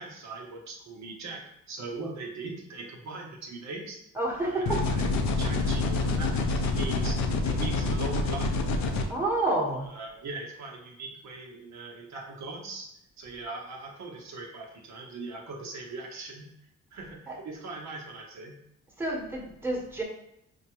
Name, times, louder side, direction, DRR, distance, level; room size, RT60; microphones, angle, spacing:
voice 1, 0.0-4.0 4.4-8.6 9.9-12.9 13.2-16.5 16.9-18.6, right 3 dB, 65° right, 0 dB, 0.8 m, -40 dB
voice 2, 4.2-4.8 9.1-9.9 17.3-17.4 19.0-20.0, right 2 dB, 5° right, -3 dB, 1.1 m, -29 dB
sound 1, 4.7-9.0, left 3 dB, 65° left, 0.6 m, -27 dB
5.2 x 2.2 x 2.9 m, 0.78 s
cardioid pair, 90°, 30 cm